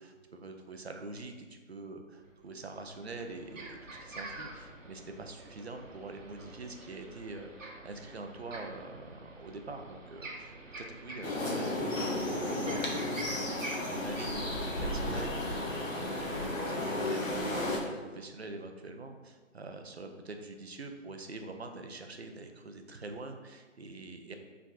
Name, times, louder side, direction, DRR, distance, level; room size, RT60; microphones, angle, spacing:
voice 1, 0.0-24.4, right 3 dB, 55° right, 5 dB, 0.5 m, -45 dB
sound 1, 2.2-2.3 2.7-14.3, right 2 dB, 75° right, 0.9 m, -47 dB
sound 2, 11.2-17.8, left 1 dB, 80° left, 1.1 m, -33 dB
5.8 x 3.5 x 2.4 m, 1.4 s
hypercardioid pair, 180°, 39 cm